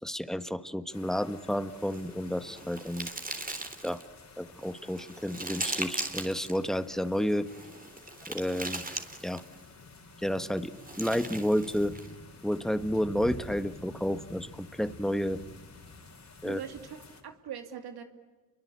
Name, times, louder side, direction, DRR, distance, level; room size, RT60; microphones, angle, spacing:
voice 1, 0.0-3.1 3.8-4.0 4.4-7.5 8.3-8.8 9.2-9.4 10.2-11.9 12.4-15.4 16.4-16.6, equal, ahead, 11 dB, 1.5 m, -31 dB
sound 1, 0.9-17.2, left 3 dB, 45° left, 4.7 m, -50 dB
sound 2, 1.8-4.1 4.6-6.6 7.4-9.6 10.6-12.1, right 2 dB, 20° right, 3.7 m, -39 dB
voice 2, 16.4-18.0, right 8 dB, 75° right, 6 dB, 2.6 m, -42 dB
29.5 x 23.5 x 8.5 m, 1.3 s
cardioid pair, 65°, 38 cm